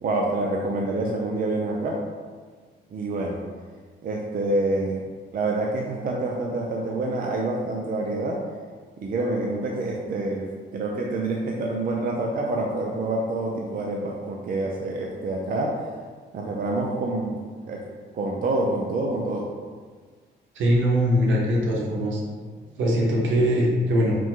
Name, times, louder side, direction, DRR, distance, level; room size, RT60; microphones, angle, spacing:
voice 1, 0.0-2.0 2.9-3.4 4.0-5.0 5.3-8.4 9.0-10.4 10.7-15.7 16.3-17.4 17.7-17.8 18.1-19.4, right 2 dB, 45° right, -1 dB, 0.5 m, -27 dB
voice 2, 20.5-22.2 22.8-24.2, equal, 75° right, -3 dB, 1.0 m, -21 dB
4.9 x 2.2 x 3.8 m, 1.6 s
cardioid pair, 90°, 20 cm